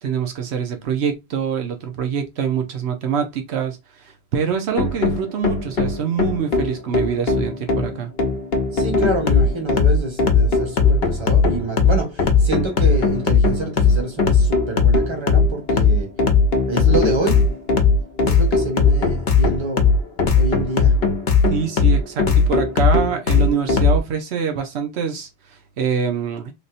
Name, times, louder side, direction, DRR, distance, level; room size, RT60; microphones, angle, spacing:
voice 1, 0.0-8.1 21.5-26.5, right 7 dB, 85° right, 1.0 m, -25 dB
sound 1, 4.8-24.0, left 4 dB, 70° left, 0.9 m, -18 dB
voice 2, 8.7-16.1 16.6-17.5 18.3-19.8 20.4-20.9, right 2 dB, 25° right, 1.2 m, -27 dB
3.4 x 2.6 x 2.5 m
omnidirectional pair, 1.1 m